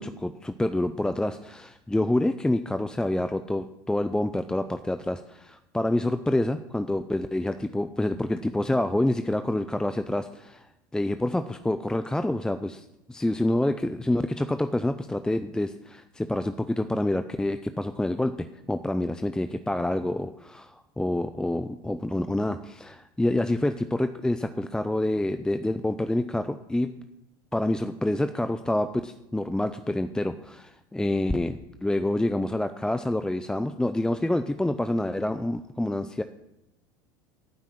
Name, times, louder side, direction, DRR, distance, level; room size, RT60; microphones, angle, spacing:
voice 1, 0.0-10.6 10.9-26.9 27.5-36.2, left 1 dB, 5° left, 9 dB, 0.6 m, -27 dB
11.5 x 5.9 x 8.7 m, 0.89 s
hypercardioid pair, 80°, 12 cm